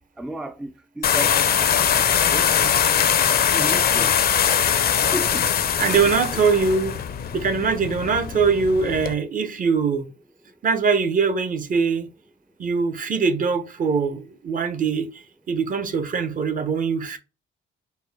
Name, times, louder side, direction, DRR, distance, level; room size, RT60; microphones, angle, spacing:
voice 1, 0.2-1.7 2.2-2.8 3.5-4.1 4.7-5.5, right 1 dB, 5° right, 0.3 m, -34 dB
sound 1, 1.0-9.1, left 8 dB, 50° left, 0.5 m, -21 dB
voice 2, 5.8-7.0 7.3-10.1 10.6-12.1 12.6-17.2, right 5 dB, 45° right, 0.7 m, -22 dB
4.4 x 2.1 x 3.4 m
cardioid pair, 90°, 20 cm